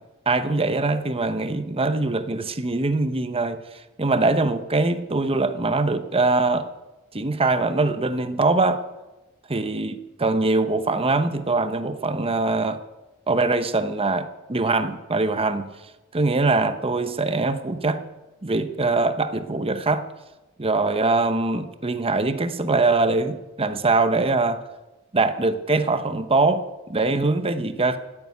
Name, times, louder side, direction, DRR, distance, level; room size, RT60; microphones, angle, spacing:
voice 1, 0.3-3.6 4.0-6.7 7.1-8.8 9.5-12.8 13.3-15.7 16.1-18.0 18.4-20.0 20.6-24.6 25.1-28.0, right 3 dB, 25° right, 10 dB, 0.9 m, -22 dB
15.5 x 9.5 x 8.5 m, 1.0 s
head